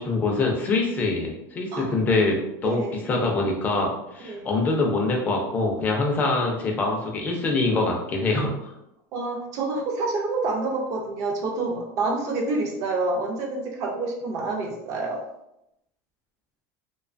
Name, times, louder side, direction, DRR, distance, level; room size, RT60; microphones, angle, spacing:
voice 1, 0.0-2.8 3.1-8.7, left 3 dB, 20° left, 0 dB, 0.4 m, -24 dB
voice 2, 2.6-3.0 4.2-4.5 9.1-15.2, right 3 dB, 35° right, 1 dB, 0.5 m, -28 dB
2.7 x 2.2 x 2.4 m, 0.84 s
supercardioid pair, 170°, 9 cm